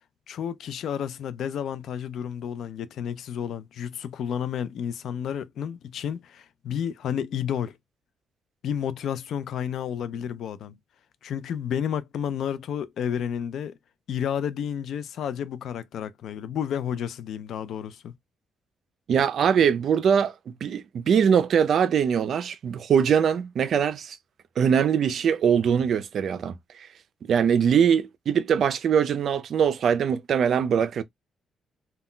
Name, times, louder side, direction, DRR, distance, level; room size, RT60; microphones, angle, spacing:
voice 1, 0.3-7.8 8.6-10.8 11.2-13.8 14.1-18.1, left 8 dB, 70° left, 0.3 m, -31 dB
voice 2, 19.1-20.3 20.6-24.2 24.6-26.6 27.2-31.0, right 7 dB, 60° right, 0.4 m, -22 dB
2.2 x 2.1 x 3.7 m
cardioid pair, 90°, 0 cm